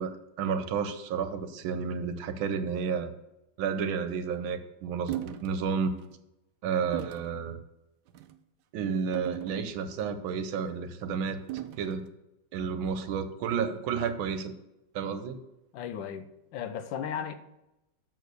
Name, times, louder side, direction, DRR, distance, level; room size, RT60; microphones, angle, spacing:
voice 1, 0.0-3.1 3.6-5.9 6.6-7.6 8.7-11.4 11.8-12.0 12.5-14.5 15.0-15.4, right 6 dB, 90° right, 10 dB, 1.6 m, -31 dB
sound 1, 5.1-5.5 6.0-6.2 6.9-7.3 8.1-8.4 9.1-10.0 11.5-12.0, right 13 dB, 75° right, 1.0 m, -38 dB
voice 2, 15.7-17.3, left 8 dB, 70° left, 11 dB, 1.3 m, -36 dB
6.7 x 6.5 x 6.7 m, 0.92 s
omnidirectional pair, 2.2 m